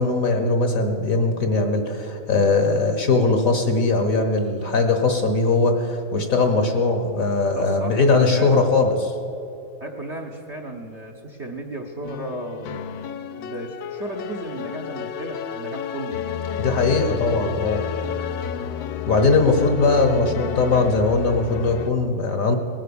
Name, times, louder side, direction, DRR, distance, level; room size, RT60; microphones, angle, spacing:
voice 1, 0.0-9.1 16.6-17.8 19.1-22.6, left 3 dB, 50° left, 5 dB, 1.4 m, -20 dB
voice 2, 7.5-8.6 9.8-16.2, right 1 dB, 45° right, 3 dB, 1.1 m, -35 dB
sound 1, 12.0-21.9, left 7 dB, 75° left, 1.4 m, -31 dB
19.0 x 9.6 x 6.9 m, 2.9 s
omnidirectional pair, 2.2 m